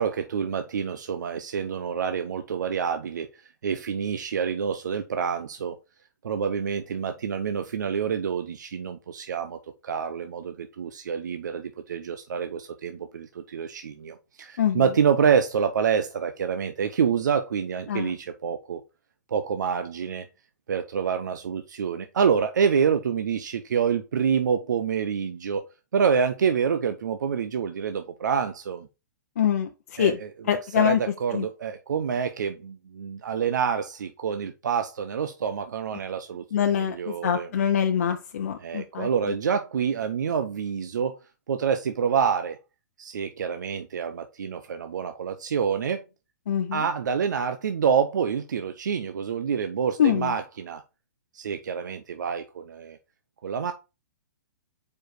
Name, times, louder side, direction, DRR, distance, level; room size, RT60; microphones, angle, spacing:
voice 1, 0.0-3.3 3.6-5.8 6.2-18.8 19.3-20.3 20.7-25.6 25.9-28.9 30.0-30.3 30.8-36.4 36.9-37.5 38.6-41.1 41.5-42.6 43.0-46.0 46.7-50.8 51.3-53.0 53.4-53.7, right 7 dB, 80° right, 0.7 m, -27 dB
voice 2, 29.4-30.2 30.4-31.0 31.3-31.5 36.5-39.1 46.5-46.9 50.0-50.3, left 9 dB, 50° left, 0.7 m, -24 dB
4.8 x 4.8 x 4.6 m
hypercardioid pair, 175°, 10 cm